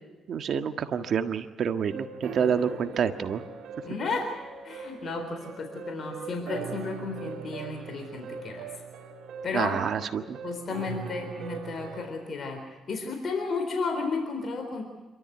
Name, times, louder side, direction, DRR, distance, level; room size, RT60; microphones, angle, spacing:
voice 1, 0.3-3.4 9.5-10.4, right 7 dB, 60° right, 8 dB, 1.6 m, -28 dB
sound 1, 1.9-12.1, right 6 dB, 75° right, 2.2 m, -40 dB
voice 2, 3.8-4.3 4.6-8.7 9.4-9.8 10.4-14.8, left 4 dB, 50° left, 4 dB, 4.0 m, -33 dB
27.0 x 13.5 x 9.4 m, 1.2 s
cardioid pair, 90°, 0 cm